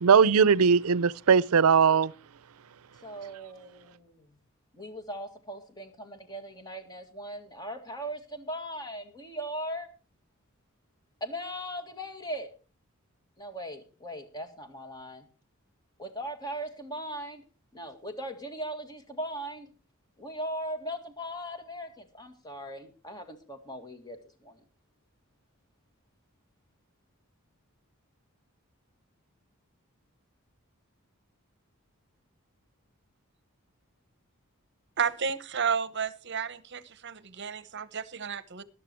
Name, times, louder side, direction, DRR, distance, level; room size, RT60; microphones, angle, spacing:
voice 1, 0.0-2.1, right 6 dB, 85° right, 0.5 m, -20 dB
voice 2, 3.0-4.3 4.7-9.9 11.2-12.5 13.4-15.3 16.0-17.4 17.7-19.7 20.2-24.6, equal, 20° left, 2.0 m, -39 dB
voice 3, 35.0-38.6, right 6 dB, 55° right, 0.9 m, -32 dB
13.0 x 12.0 x 4.5 m
head